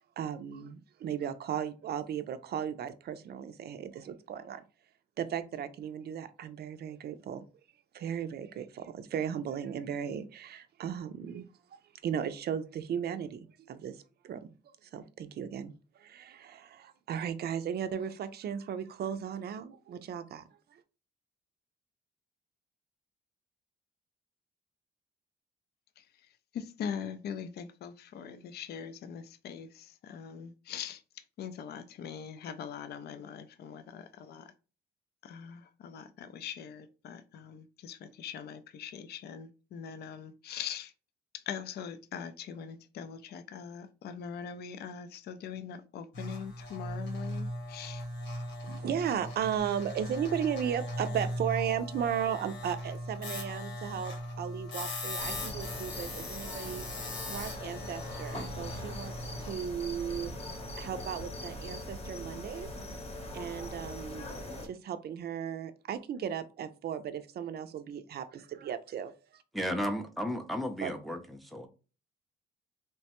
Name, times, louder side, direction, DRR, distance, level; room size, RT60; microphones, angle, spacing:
voice 1, 0.0-4.6 5.2-7.4 7.9-11.5 11.7-14.5 14.8-20.4 20.7-20.8 48.6-59.1 59.4-60.3 60.8-62.7 63.3-64.3 64.6-69.1 70.8-70.9, right 8 dB, 55° right, 0.4 m, -36 dB
voice 2, 26.5-34.5 35.2-40.9 41.3-48.0, left 7 dB, 55° left, 0.4 m, -42 dB
sound 1, 46.1-59.5, left 1 dB, 70° left, 1.1 m, -39 dB
sound 2, 55.2-64.7, left 1 dB, 30° left, 0.9 m, -41 dB
voice 3, 69.5-71.7, equal, ahead, 0.5 m, -34 dB
3.1 x 2.1 x 2.9 m
cardioid pair, 90°, 20 cm